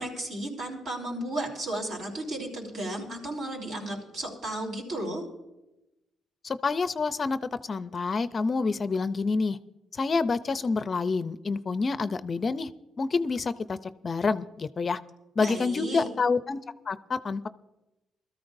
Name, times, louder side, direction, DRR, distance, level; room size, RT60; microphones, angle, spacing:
voice 1, 0.0-5.2 15.4-16.1, right 1 dB, 65° right, 0 dB, 5.0 m, -34 dB
voice 2, 6.4-9.6 10.0-12.7 13.0-13.8 14.0-15.0 15.4-16.6 16.9-17.5, left 4 dB, 40° left, 13 dB, 0.5 m, -28 dB
21.5 x 13.5 x 2.6 m, 0.98 s
cardioid pair, 90°, 0 cm